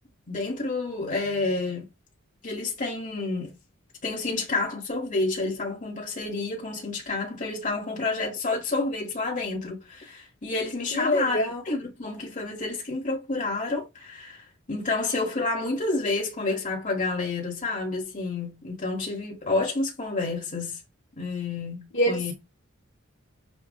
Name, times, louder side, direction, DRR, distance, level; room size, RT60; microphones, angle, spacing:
voice 1, 0.3-1.9 2.4-3.5 4.0-20.8 21.1-22.3, left 3 dB, 40° left, 1.6 m, -29 dB
voice 2, 10.9-11.6 21.9-22.3, equal, 60° left, 1.5 m, -25 dB
6.9 x 2.5 x 2.3 m
head